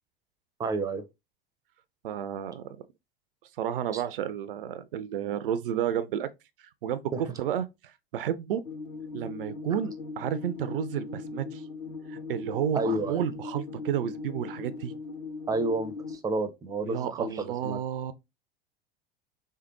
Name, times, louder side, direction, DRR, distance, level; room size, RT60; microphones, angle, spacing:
voice 1, 0.6-1.0 3.9-4.0 7.1-7.2 12.7-13.2 15.5-17.8, right 2 dB, 10° right, 0.5 m, -30 dB
voice 2, 2.0-2.8 3.6-6.3 6.8-8.6 9.1-11.6 12.1-14.9 16.8-18.1, right 10 dB, 65° right, 0.5 m, -31 dB
sound 1, 8.6-16.2, left 4 dB, 65° left, 1.3 m, -39 dB
3.4 x 3.3 x 2.9 m
figure-of-eight pair, 80°, 29 cm